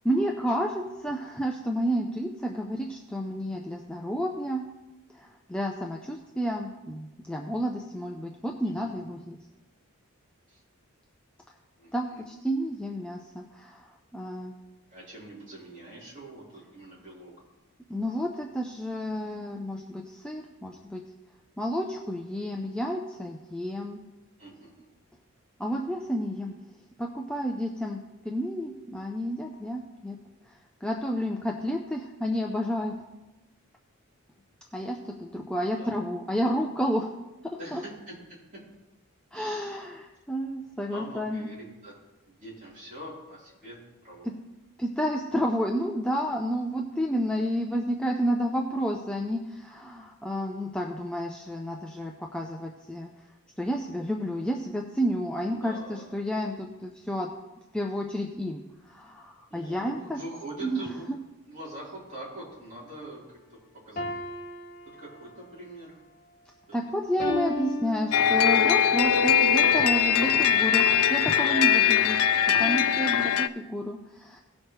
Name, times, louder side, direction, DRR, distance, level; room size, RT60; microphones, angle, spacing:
voice 1, 0.0-4.6 5.1-9.4 11.9-14.6 17.9-21.0 21.6-24.0 25.6-26.5 27.0-30.2 30.5-30.6 30.8-32.9 34.7-37.1 37.4-37.8 39.3-41.5 44.8-53.1 53.6-57.3 57.7-60.2 60.6-61.0 66.7-72.2 72.5-74.4, equal, 5° left, 0 dB, 0.5 m, -31 dB
voice 2, 8.6-9.0 10.5-10.6 11.8-12.2 14.9-17.3 24.4-24.9 35.8-35.9 37.6-38.6 39.3-39.8 40.9-41.9 42.3-43.8 44.0-44.3 55.5-56.1 59.5-61.1 61.5-63.2 63.9-64.1 65.0-66.0 66.7-66.8, right 1 dB, 35° right, -7 dB, 3.9 m, -44 dB
sound 1, 64.0-65.5 67.2-68.7, left 2 dB, 40° left, 1.1 m, -35 dB
sound 2, 68.1-73.5, left 8 dB, 85° left, 0.5 m, -21 dB
18.0 x 6.3 x 3.2 m, 1.0 s
head